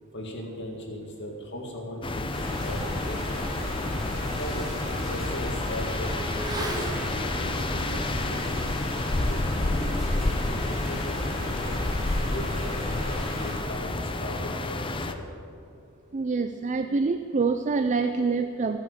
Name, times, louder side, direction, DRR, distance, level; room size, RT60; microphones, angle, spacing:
voice 1, 0.1-2.3 2.6-3.4 4.3-4.6 4.9-6.1 6.6-8.4 9.2-11.6 12.2-15.3, left 1 dB, 55° left, 0 dB, 2.1 m, -38 dB
sound 1, 2.0-15.1, left 2 dB, 25° left, 0.6 m, -30 dB
sound 2, 2.3-13.5, equal, ahead, 3.4 m, -34 dB
Motorcycle / Accelerating revving vroom, 4.4-13.9 14.2-14.3, right 2 dB, 20° right, 1.5 m, -43 dB
voice 2, 16.1-18.8, right 4 dB, 35° right, 8 dB, 0.4 m, -26 dB
15.0 x 8.9 x 6.8 m, 2.3 s
head